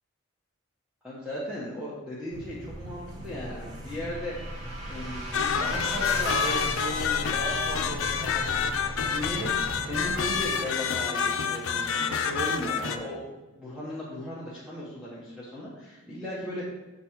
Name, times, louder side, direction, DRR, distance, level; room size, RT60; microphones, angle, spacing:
voice 1, 1.0-4.5 4.9-13.2 13.5-16.7, left 1 dB, 5° right, -8 dB, 0.9 m, -36 dB
sound 1, 2.3-10.5, right 1 dB, 20° right, 0.6 m, -39 dB
sound 2, 2.9-8.2, right 1 dB, 35° right, 1.9 m, -41 dB
sound 3, 5.3-13.0, left 6 dB, 80° left, 0.5 m, -28 dB
6.0 x 4.1 x 4.3 m, 1.2 s
head